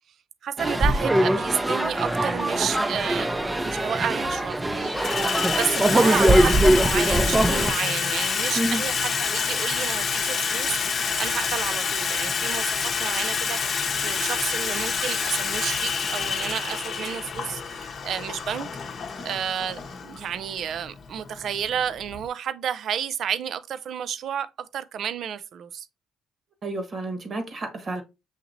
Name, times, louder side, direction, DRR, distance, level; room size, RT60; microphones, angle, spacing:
voice 1, 0.4-18.7 19.2-25.9, right 8 dB, 60° right, 0.4 m, -31 dB
sound 1, 0.6-7.7, right 1 dB, 15° right, 0.5 m, -22 dB
Water tap faucet / Sink (filling or washing), 2.9-3.0 4.0-4.4 4.7-22.3, left 6 dB, 50° left, 0.8 m, -28 dB
voice 2, 26.6-28.0, right 1 dB, 40° right, 1.3 m, -30 dB
6.5 x 2.8 x 2.6 m
cardioid pair, 85°, 0 cm